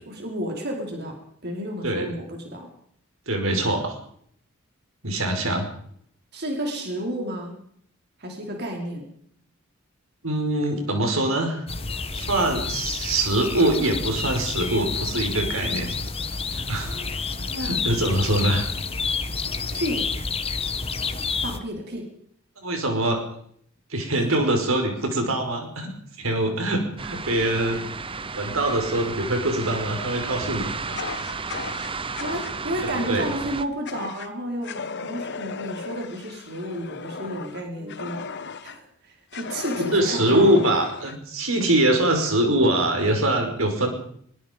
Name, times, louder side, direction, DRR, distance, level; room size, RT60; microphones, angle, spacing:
voice 1, 0.0-1.1 1.4-2.7 6.3-7.5 8.2-9.1 19.7-20.0 21.4-22.1 32.2-34.7 35.0-38.2 38.6-40.7, equal, 55° right, 1 dB, 4.9 m, -31 dB
voice 2, 3.3-3.9 5.0-5.7 10.2-11.6 12.1-16.0 16.5-17.0 17.4-18.7 22.6-23.2 23.9-25.9 26.2-27.8 28.3-31.1 33.1-33.3 37.8-37.9 39.7-43.9, right 1 dB, 75° right, 4 dB, 5.4 m, -23 dB
sound 1, 11.7-21.6, left 4 dB, 30° left, 1.5 m, -29 dB
sound 2, 27.0-33.7, right 4 dB, 25° right, 0.9 m, -33 dB
Fire, 30.9-32.6 33.9-34.3 34.6-38.8 39.3-41.2, left 5 dB, 55° left, 1.4 m, -36 dB
23.0 x 22.5 x 5.4 m, 0.65 s
head